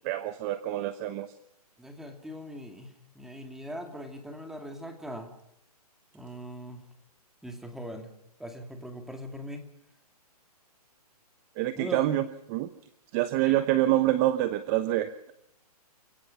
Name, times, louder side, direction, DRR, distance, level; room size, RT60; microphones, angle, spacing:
voice 1, 0.0-1.3 11.6-12.7 13.1-15.3, right 14 dB, 25° right, 12 dB, 1.0 m, -26 dB
voice 2, 1.8-5.3 6.1-6.8 7.4-8.1 8.4-9.6 11.8-12.0 13.4-13.6, equal, ahead, 4 dB, 2.6 m, -41 dB
29.0 x 17.5 x 5.6 m, 0.76 s
hypercardioid pair, 155°, 20 cm